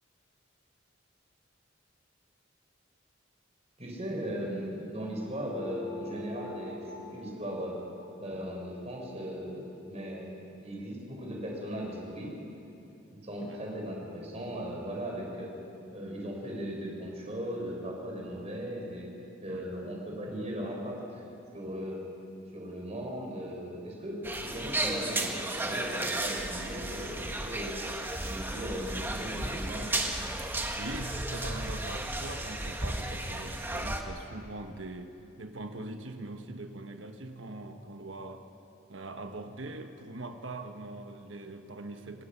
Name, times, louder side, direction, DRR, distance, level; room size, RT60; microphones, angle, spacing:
voice 1, 3.8-7.7 8.2-12.3 13.1-15.5 15.9-19.1 19.4-21.2 21.5-22.0 22.5-27.7 28.3-29.9, equal, 35° right, -1 dB, 4.6 m, -38 dB
sound 1, 5.4-10.2, left 1 dB, 30° left, 5.2 m, -46 dB
sound 2, 24.2-34.0, right 1 dB, 10° right, 1.3 m, -34 dB
voice 2, 30.7-38.5 38.9-42.2, right 2 dB, 75° right, 6 dB, 1.3 m, -42 dB
28.0 x 17.0 x 5.9 m, 2.8 s
head